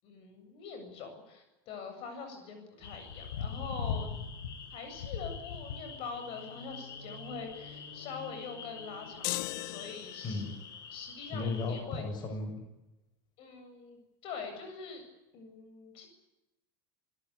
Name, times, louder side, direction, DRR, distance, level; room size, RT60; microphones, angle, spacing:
voice 1, 0.0-4.1 4.7-10.4 10.9-12.0 13.4-15.0 15.3-16.1, left 5 dB, 55° left, 6 dB, 7.8 m, -44 dB
sound 1, 2.8-11.8, left 6 dB, 90° left, 5.1 m, -42 dB
sound 2, 9.2-10.5, left 20 dB, 70° left, 0.8 m, -37 dB
voice 2, 10.2-10.6 11.3-12.5, left 3 dB, 40° left, 5 dB, 7.6 m, -35 dB
26.5 x 18.5 x 8.5 m, 0.97 s
supercardioid pair, 110°, 12 cm